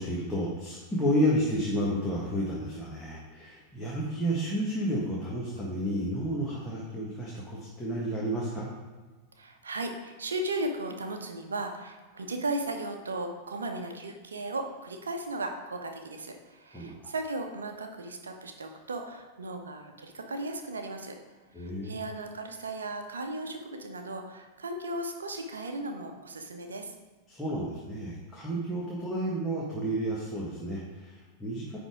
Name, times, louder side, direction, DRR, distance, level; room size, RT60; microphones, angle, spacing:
voice 1, 0.0-8.7 16.7-16.9 21.5-22.0 27.3-31.8, equal, 5° left, -6 dB, 1.6 m, -31 dB
voice 2, 9.4-21.2 21.6-26.9, right 2 dB, 70° right, 5 dB, 0.9 m, -36 dB
9.8 x 3.6 x 4.9 m, 1.3 s
figure-of-eight pair, 90°, 0 cm